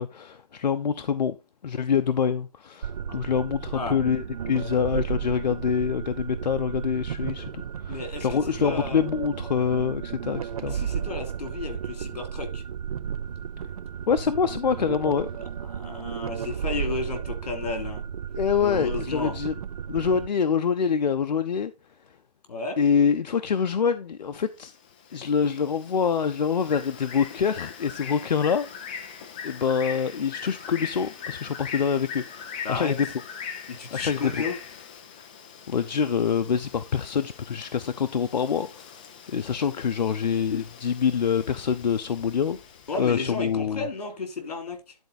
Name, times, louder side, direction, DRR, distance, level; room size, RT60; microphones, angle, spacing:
voice 1, 0.0-1.4 1.6-10.8 14.1-15.3 18.3-19.5 19.9-21.7 22.8-24.7 25.1-28.7 29.4-33.1 33.9-34.3 35.2-35.3 35.7-38.9 39.3-42.6 43.0-43.9, left 7 dB, 90° left, 0.7 m, -25 dB
sound 1, 2.8-20.3, right 8 dB, 60° right, 0.4 m, -33 dB
voice 2, 7.9-9.0 10.7-12.6 15.6-18.0 18.6-19.3 22.5-22.8 32.6-32.9 33.7-34.5 42.9-44.9, left 3 dB, 65° left, 3.2 m, -33 dB
Bird, 24.6-43.4, left 7 dB, 10° left, 0.4 m, -41 dB
11.0 x 4.4 x 4.0 m
hypercardioid pair, 160°, 21 cm